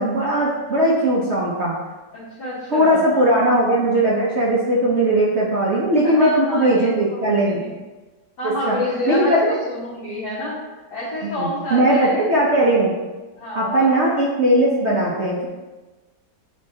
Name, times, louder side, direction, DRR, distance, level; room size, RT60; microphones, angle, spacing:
voice 1, 0.0-1.8 2.7-7.6 8.4-8.8 9.1-9.6 11.2-12.9 13.5-15.5, right 1 dB, 50° right, -4 dB, 1.0 m, -19 dB
voice 2, 2.1-3.4 6.0-7.7 8.4-10.6 10.9-12.3 13.4-13.9, left 1 dB, 65° left, -12 dB, 2.3 m, -28 dB
8.7 x 4.4 x 2.8 m, 1.2 s
omnidirectional pair, 1.9 m